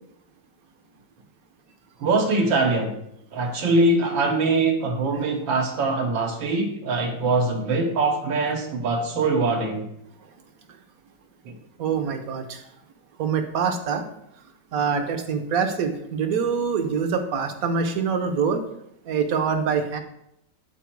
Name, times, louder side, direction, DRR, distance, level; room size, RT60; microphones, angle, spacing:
voice 1, 2.0-2.9 3.3-9.9 11.5-11.6, right 3 dB, 80° right, 2 dB, 1.9 m, -23 dB
voice 2, 11.8-12.6 13.2-14.0 14.7-18.6 19.1-20.0, right 6 dB, 60° right, 6 dB, 1.1 m, -25 dB
9.4 x 4.3 x 4.5 m, 0.77 s
omnidirectional pair, 2.0 m